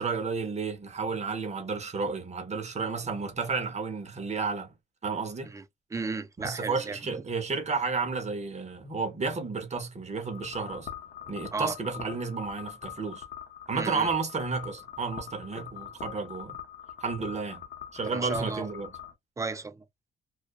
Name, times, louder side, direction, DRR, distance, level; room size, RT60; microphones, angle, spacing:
voice 1, 0.0-4.7 5.0-5.5 6.4-10.9 11.3-13.2 13.7-16.6 17.0-17.6 17.9-18.9, right 4 dB, 35° right, 1.0 m, -32 dB
voice 2, 5.9-7.0 11.5-11.8 13.7-14.1 18.1-18.7 19.4-19.8, right 4 dB, 15° right, 0.4 m, -34 dB
sound 1, 10.2-19.1, left 9 dB, 50° left, 0.8 m, -43 dB
2.3 x 2.2 x 2.4 m
cardioid pair, 90°, 20 cm